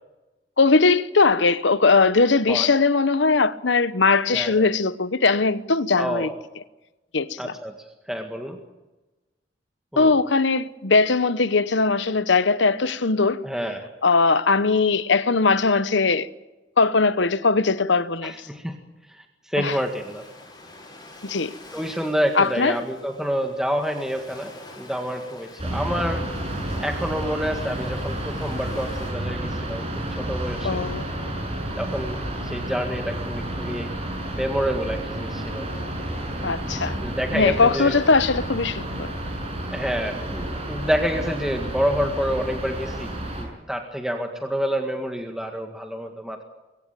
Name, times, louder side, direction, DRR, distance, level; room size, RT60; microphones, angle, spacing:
voice 1, 0.6-6.3 7.1-7.5 10.0-13.4 14.0-16.3 16.8-18.3 19.6-19.8 21.2-21.5 22.4-22.8 30.6-31.1 36.4-37.0 37.3-39.1, left 4 dB, 70° left, 1.0 m, -20 dB
voice 2, 4.3-4.7 6.0-6.3 7.4-7.7 8.1-8.6 9.9-10.1 13.4-13.9 18.2-18.8 19.1-20.2 21.7-26.3 26.8-30.9 31.8-33.9 34.3-35.7 37.0-38.0 39.7-46.4, equal, 5° right, 1.9 m, -28 dB
Ocean, 19.6-29.1, left 2 dB, 20° left, 7.8 m, -46 dB
sound 1, 25.6-43.4, right 1 dB, 35° right, 6.6 m, -31 dB
23.0 x 16.5 x 9.1 m
head